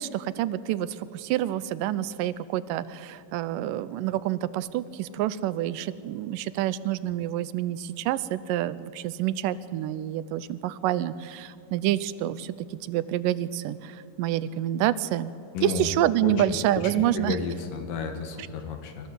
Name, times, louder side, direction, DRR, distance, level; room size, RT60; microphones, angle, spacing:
voice 1, 0.0-12.5 12.8-15.3 15.6-17.4 18.4-18.5, right 12 dB, 80° right, 16 dB, 2.2 m, -28 dB
voice 2, 15.5-15.9 16.2-16.6 16.8-19.1, left 5 dB, 80° left, 5 dB, 3.2 m, -32 dB
25.0 x 14.0 x 8.2 m, 2.5 s
omnidirectional pair, 3.9 m